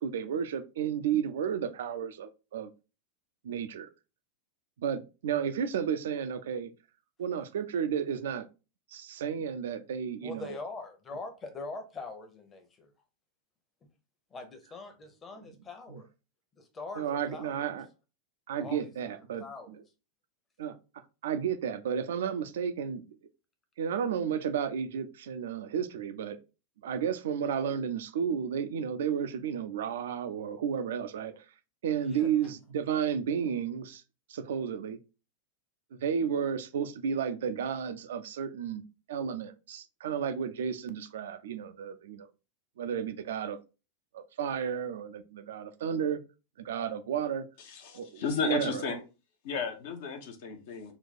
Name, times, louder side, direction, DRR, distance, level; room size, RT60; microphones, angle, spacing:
voice 1, 0.0-2.7 3.4-3.9 4.8-6.7 7.2-8.5 8.9-10.6 15.9-16.0 17.0-17.8 18.5-19.8 20.6-20.7 21.2-23.0 23.8-26.4 26.8-31.4 31.8-34.0 34.3-35.0 35.9-38.8 39.1-42.3 42.8-43.6 44.1-46.2 46.6-47.4 47.9-48.9, right 8 dB, 60° right, 0.4 m, -32 dB
voice 2, 10.2-12.9 14.3-16.1 16.5-17.6 18.6-19.8 32.0-32.3, left 3 dB, 20° left, 0.9 m, -43 dB
voice 3, 47.6-49.0 49.4-50.9, left 5 dB, 50° left, 0.9 m, -34 dB
4.0 x 2.3 x 4.1 m
figure-of-eight pair, 90°, 0 cm